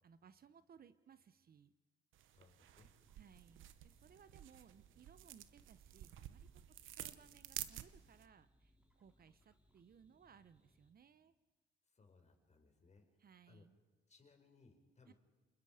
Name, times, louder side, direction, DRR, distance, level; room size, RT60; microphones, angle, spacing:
voice 1, 0.0-1.7 3.1-6.5 6.9-11.3 13.2-13.8 15.1-15.2, right 7 dB, 50° right, 14 dB, 0.9 m, -64 dB
sound 1, 2.1-8.3, right 12 dB, 80° right, 1.0 m, -52 dB
voice 2, 2.3-2.9 11.9-13.1 13.5-13.6 14.1-15.1, left 4 dB, 35° left, 4 dB, 4.5 m, -66 dB
sound 2, 2.7-10.9, left 1 dB, 5° right, 3.3 m, -74 dB
27.5 x 21.0 x 5.0 m, 1.2 s
cardioid pair, 90°, 20 cm